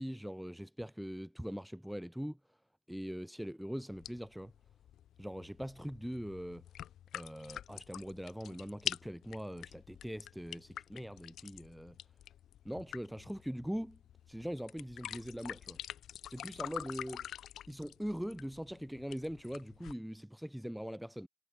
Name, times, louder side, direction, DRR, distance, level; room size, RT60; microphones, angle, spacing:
voice 1, 0.0-2.4 2.9-4.5 5.2-6.6 7.1-11.9 12.6-14.0 14.3-15.8 16.3-17.3 17.7-21.3, equal, ahead, 0.7 m, -42 dB
sound 1, 3.9-19.9, left 11 dB, 70° left, 1.1 m, -47 dB
cardioid pair, 90°, 0 cm